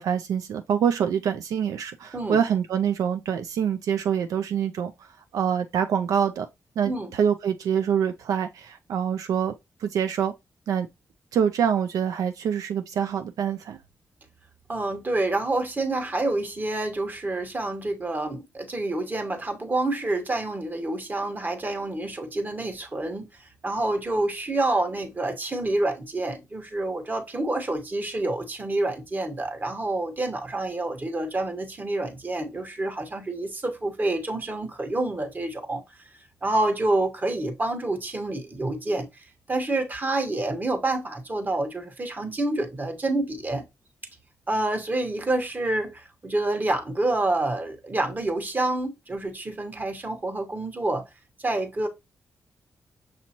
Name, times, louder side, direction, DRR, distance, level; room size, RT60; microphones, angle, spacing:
voice 1, 0.0-5.1 5.3-6.5 6.8-9.5 9.8-10.3 10.7-10.9 11.3-13.8, right 8 dB, 90° right, 0.3 m, -25 dB
voice 2, 14.7-23.3 23.6-35.8 36.4-43.6 44.5-51.0 51.4-51.9, right 2 dB, 30° right, 1.1 m, -28 dB
6.2 x 2.7 x 2.8 m
cardioid pair, 80°, 6 cm